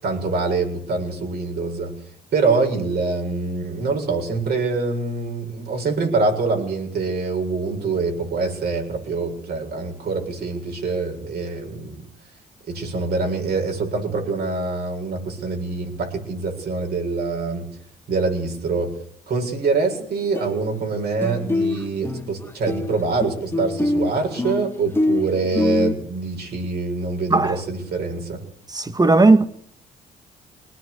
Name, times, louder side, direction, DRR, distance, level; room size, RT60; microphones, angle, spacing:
voice 1, 0.0-1.9 2.3-12.0 12.7-17.7 18.1-18.9 19.3-28.4, right 4 dB, 65° right, 7.1 m, -25 dB
sound 1, 20.0-20.1 20.3-20.9 21.2-25.9, left 2 dB, 15° left, 1.8 m, -24 dB
voice 2, 28.7-29.5, right 3 dB, 20° right, 1.9 m, -15 dB
21.5 x 19.5 x 8.2 m
supercardioid pair, 60°, 17 cm